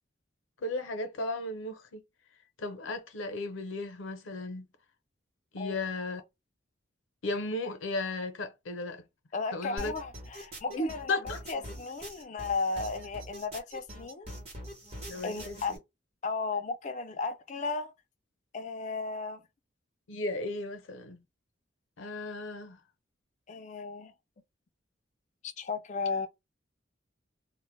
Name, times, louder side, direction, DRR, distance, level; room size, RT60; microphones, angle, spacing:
voice 1, 0.6-2.0 2.6-4.7 5.5-6.2 7.2-9.0 9.5-9.9 10.7-11.4 15.1-15.8 20.1-21.2 22.0-22.8, left 2 dB, 90° left, 0.6 m, -35 dB
voice 2, 9.3-14.3 15.2-15.7 16.2-17.9 18.5-19.4 23.5-24.1 25.4-26.3, left 4 dB, 40° left, 0.3 m, -34 dB
sound 1, 9.8-15.8, equal, 35° right, 0.9 m, -43 dB
2.1 x 2.0 x 3.0 m
head